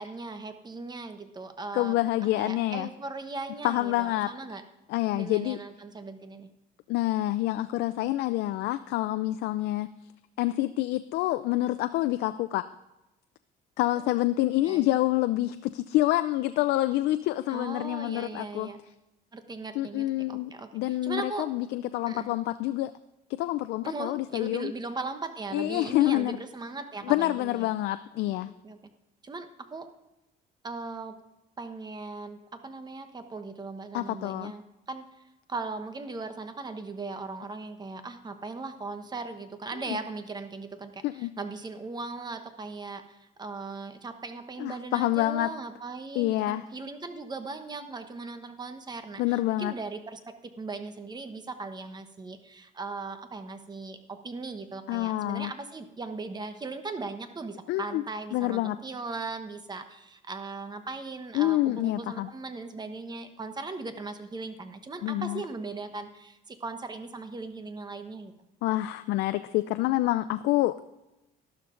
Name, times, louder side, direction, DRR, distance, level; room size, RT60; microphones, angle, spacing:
voice 1, 0.0-2.0 2.3-4.6 5.1-6.5 14.6-14.9 17.5-18.8 19.3-21.5 22.1-22.3 23.8-27.7 28.4-28.8 29.2-29.9 30.6-31.1 31.6-34.6 34.9-35.1 35.5-68.3, right 3 dB, 25° right, 8 dB, 1.1 m, -38 dB
voice 2, 1.7-2.9 3.6-4.3 4.9-5.6 6.9-9.9 10.4-12.7 13.8-18.7 19.8-22.9 23.3-24.7 25.5-26.4 27.0-28.5 33.9-34.5 39.9-40.0 41.0-41.3 44.6-45.5 46.2-46.7 49.2-49.7 54.9-55.5 57.7-58.0 58.3-58.8 61.3-62.3 65.0-65.4 68.6-70.8, left 16 dB, 80° left, 11 dB, 0.4 m, -27 dB
12.0 x 12.0 x 3.8 m, 0.95 s
cardioid pair, 110°, 17 cm